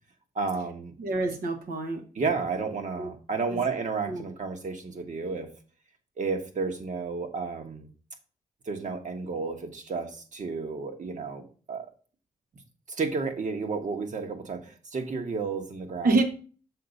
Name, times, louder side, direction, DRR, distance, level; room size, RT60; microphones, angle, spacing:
voice 1, 0.3-0.9 2.1-5.5 6.2-7.9 8.7-11.9 12.9-16.2, right 4 dB, 60° right, 5 dB, 1.4 m, -32 dB
voice 2, 1.0-2.0 3.0-3.1 3.5-3.6 4.1-4.2 16.0-16.2, right 3 dB, 90° right, 4 dB, 1.3 m, -26 dB
6.5 x 4.0 x 5.3 m, 0.40 s
cardioid pair, 70°, 15 cm